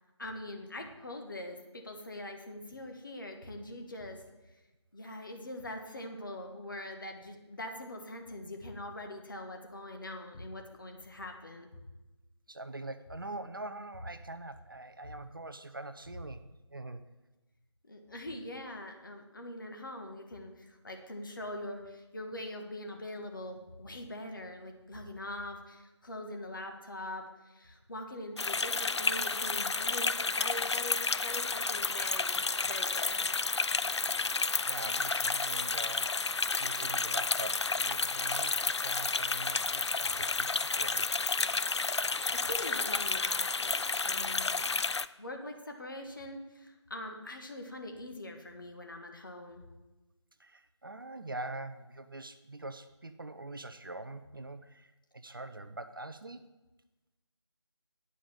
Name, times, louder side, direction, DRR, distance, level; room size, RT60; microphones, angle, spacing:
voice 1, 0.2-4.2 4.9-11.7 17.9-33.3 41.8-44.7 45.2-49.7, left 1 dB, 45° left, 4 dB, 1.4 m, -43 dB
voice 2, 12.5-16.4 16.7-17.1 34.7-41.1 50.4-56.5, right 2 dB, 50° right, 10 dB, 0.6 m, -44 dB
sound 1, 28.4-45.1, left 4 dB, 70° left, 0.4 m, -31 dB
9.8 x 5.1 x 7.3 m, 1.1 s
figure-of-eight pair, 160°, 15 cm